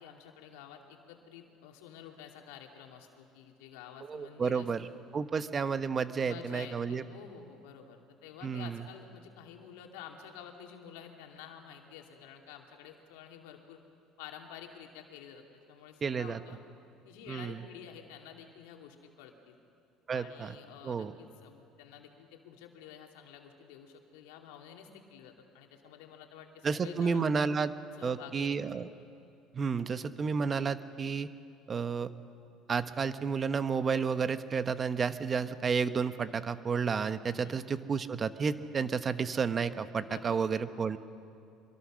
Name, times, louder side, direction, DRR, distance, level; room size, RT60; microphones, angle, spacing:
voice 1, 0.0-4.7 6.2-13.8 14.2-15.4 15.7-16.6 17.0-19.6 20.1-27.3 27.9-28.7 37.4-37.6 40.0-40.6, left 8 dB, 85° left, 2 dB, 2.5 m, -50 dB
voice 2, 4.1-4.8 5.1-7.0 8.4-8.8 16.0-16.4 17.3-17.6 20.1-20.6 20.8-21.1 26.6-27.7 28.0-28.9 29.5-31.3 31.7-32.1 32.7-41.0, right 5 dB, 35° right, 11 dB, 1.1 m, -31 dB
25.0 x 22.5 x 6.4 m, 2.5 s
supercardioid pair, 85°, 0 cm